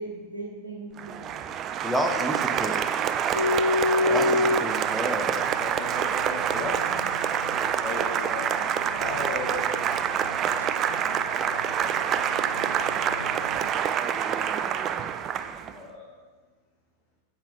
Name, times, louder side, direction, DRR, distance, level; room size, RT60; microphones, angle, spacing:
voice 1, 0.0-1.5 8.0-8.7, right 2 dB, 75° right, -6 dB, 1.2 m, -40 dB
Applause, 1.0-15.8, right 8 dB, 30° right, 0.3 m, -27 dB
voice 2, 1.8-2.8 4.1-5.5, equal, 5° right, 3 dB, 0.8 m, -30 dB
sound 1, 3.3-13.7, left 3 dB, 85° left, 0.4 m, -31 dB
voice 3, 4.0-4.4 5.6-7.0 7.8-9.7 10.4-11.9 12.6-14.7 15.7-16.2, left 3 dB, 30° left, -4 dB, 1.3 m, -39 dB
8.9 x 7.3 x 2.7 m, 1.4 s
figure-of-eight pair, 90°, 0 cm